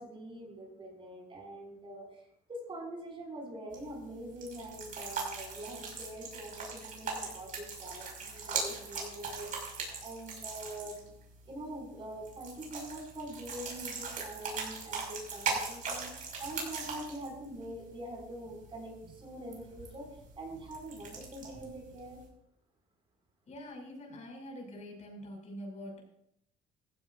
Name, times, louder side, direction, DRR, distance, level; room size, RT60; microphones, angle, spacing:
voice 1, 0.0-2.2 2.5-11.1 11.4-20.1 20.4-22.2, right 1 dB, 30° right, -1 dB, 6.4 m, -44 dB
sound 1, 3.7-22.2, right 4 dB, 50° right, 6.2 m, -40 dB
voice 2, 23.5-26.0, equal, 45° left, 0 dB, 6.4 m, -45 dB
16.5 x 16.0 x 2.7 m, 0.73 s
cardioid pair, 110°, 17 cm